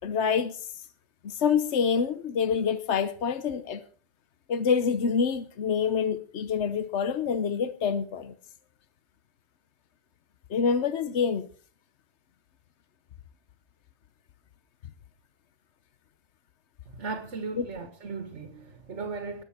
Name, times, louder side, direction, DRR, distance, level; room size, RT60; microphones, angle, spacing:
voice 1, 0.0-0.6 1.2-3.8 4.5-8.3 10.5-11.5 17.6-17.7, left 6 dB, 75° left, 1.2 m, -26 dB
voice 2, 16.9-19.4, right 4 dB, 85° right, 1.8 m, -36 dB
20.0 x 7.5 x 5.9 m
omnidirectional pair, 1.2 m